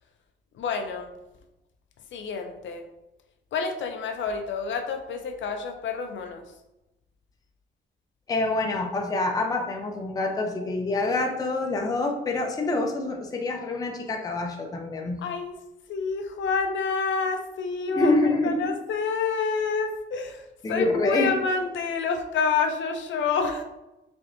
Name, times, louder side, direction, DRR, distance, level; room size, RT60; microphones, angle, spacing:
voice 1, 0.6-1.1 2.1-2.9 3.5-6.4 15.2-15.6 15.9-23.6, left 5 dB, 70° left, 5 dB, 0.5 m, -28 dB
voice 2, 8.3-15.2 17.9-18.6 20.6-21.3, left 2 dB, 20° left, 1 dB, 0.5 m, -26 dB
4.9 x 3.3 x 2.5 m, 0.96 s
wide cardioid pair, 165°, 20 cm